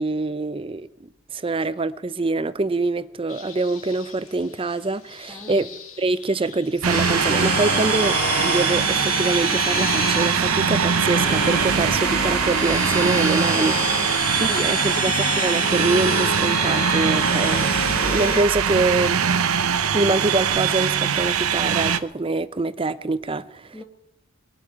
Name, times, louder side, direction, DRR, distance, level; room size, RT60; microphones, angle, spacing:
voice 1, 0.0-5.7 6.0-13.7 14.4-17.7 18.0-19.2 19.9-23.8, right 3 dB, 25° right, 0.5 m, -25 dB
sound 1, 3.3-9.1, left 6 dB, 65° left, 2.2 m, -45 dB
voice 2, 5.3-5.6 13.3-15.1 23.7-23.8, equal, 5° left, 1.3 m, -40 dB
sound 2, 6.8-22.0, right 7 dB, 75° right, 0.8 m, -22 dB
sound 3, 6.9-18.4, left 4 dB, 40° left, 1.1 m, -28 dB
20.5 x 7.5 x 9.4 m
head